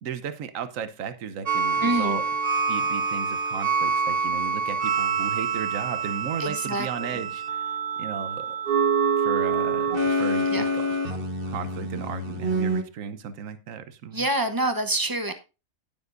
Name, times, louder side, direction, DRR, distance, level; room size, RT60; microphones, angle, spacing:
voice 1, 0.0-2.3 2.7-8.6 9.2-10.8 11.5-14.2, right 7 dB, 70° right, 11 dB, 1.3 m, -35 dB
sound 1, 1.5-12.8, right 4 dB, 45° right, 1.4 m, -26 dB
voice 2, 1.8-2.2 6.4-7.2 10.5-10.6 14.1-15.3, right 1 dB, 20° right, 7 dB, 0.8 m, -27 dB
17.5 x 7.0 x 2.6 m, 0.30 s
omnidirectional pair, 1.4 m